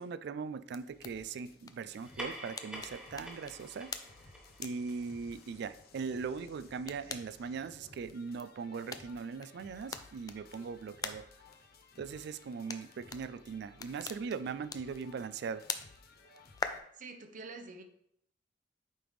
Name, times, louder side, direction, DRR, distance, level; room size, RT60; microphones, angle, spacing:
voice 1, 0.0-3.9 4.6-11.3 12.0-15.6, right 5 dB, 65° right, 14 dB, 0.3 m, -40 dB
sound 1, 0.5-16.7, left 5 dB, 20° left, 0.3 m, -47 dB
sound 2, 0.8-16.8, left 3 dB, 55° left, 0.7 m, -59 dB
sound 3, 1.9-6.8, equal, 5° right, 1.0 m, -48 dB
voice 2, 16.9-17.8, right 3 dB, 45° right, 6 dB, 0.7 m, -46 dB
8.6 x 3.4 x 3.1 m, 0.70 s
head